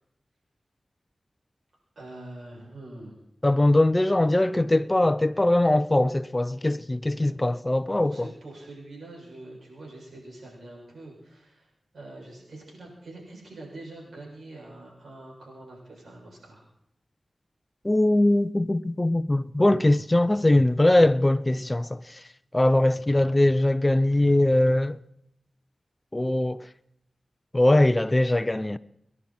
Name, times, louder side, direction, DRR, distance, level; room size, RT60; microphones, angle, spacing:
voice 1, 2.0-3.2 7.9-16.7, right 2 dB, 80° right, 7.4 m, -44 dB
voice 2, 3.4-8.1 17.8-22.0 22.5-25.0 26.1-26.6 27.5-28.8, left 1 dB, 25° left, 0.7 m, -21 dB
29.0 x 11.0 x 4.4 m
cardioid pair, 40°, 0 cm